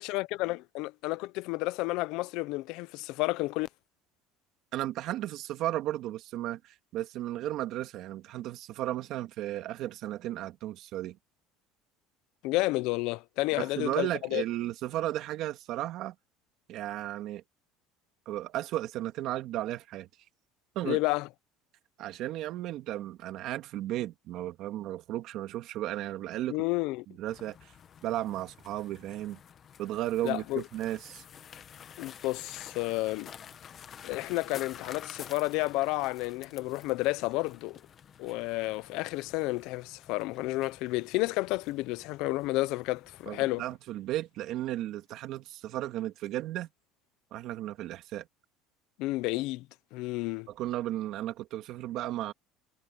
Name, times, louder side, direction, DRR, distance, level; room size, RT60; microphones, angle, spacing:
voice 1, 0.0-3.7 12.4-14.4 20.8-21.3 26.5-27.0 30.2-30.6 32.0-33.3 34.0-37.8 38.2-43.6 49.0-49.7 49.9-50.5, left 20 dB, 65° left, 0.7 m, -31 dB
voice 2, 4.7-11.2 13.6-16.1 16.7-17.4 18.3-20.1 20.8-21.0 22.0-26.6 27.2-27.7 28.0-29.4 29.8-31.2 43.3-46.7 47.3-48.3 50.5-52.3, right 14 dB, 55° right, 2.1 m, -34 dB
sound 1, 27.3-43.8, left 8 dB, 30° left, 1.3 m, -51 dB
cardioid pair, 150°, 0 cm